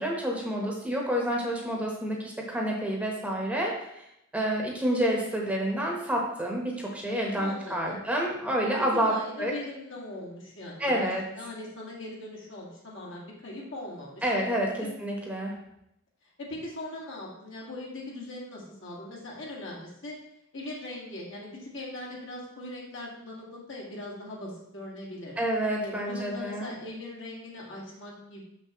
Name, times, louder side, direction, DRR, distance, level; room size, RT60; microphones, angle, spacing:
voice 1, 0.0-4.1 4.3-9.1 9.4-9.5 10.8-11.2 14.2-15.5 25.4-26.7, right 1 dB, 5° right, -1 dB, 1.0 m, -29 dB
voice 2, 7.3-8.0 8.7-14.2 14.8-14.9 16.4-20.2 20.5-25.4 25.8-28.4, left 1 dB, 65° left, -3 dB, 1.8 m, -40 dB
6.4 x 5.9 x 3.0 m, 0.80 s
head